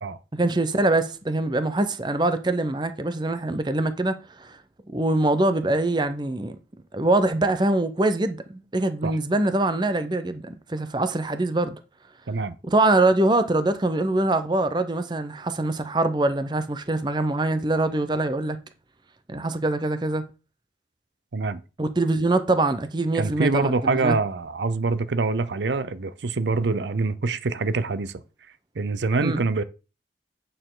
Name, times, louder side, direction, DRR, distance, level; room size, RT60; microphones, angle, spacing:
voice 1, 0.3-4.6 4.9-6.6 6.9-11.8 12.7-18.6 19.3-20.2 21.8-24.2 29.2-29.4, right 2 dB, 25° right, 0.6 m, -23 dB
voice 2, 23.1-28.2 28.8-29.6, right 3 dB, 80° right, 0.6 m, -25 dB
8.8 x 6.7 x 3.8 m
head